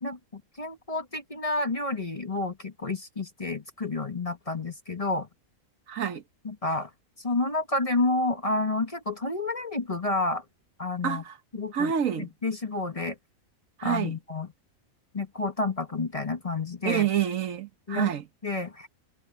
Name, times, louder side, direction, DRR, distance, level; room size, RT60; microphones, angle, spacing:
voice 1, 0.0-5.3 6.4-6.9 7.2-10.4 10.8-11.2 11.5-11.9 12.2-13.2 13.8-14.5 15.1-17.1 17.9-18.1 18.4-18.9, left 2 dB, 25° left, 1.2 m, -30 dB
voice 2, 5.9-6.2 11.0-11.4 11.7-12.3 13.8-14.2 16.8-18.2, right 9 dB, 70° right, 1.3 m, -27 dB
omnidirectional pair, 1.4 m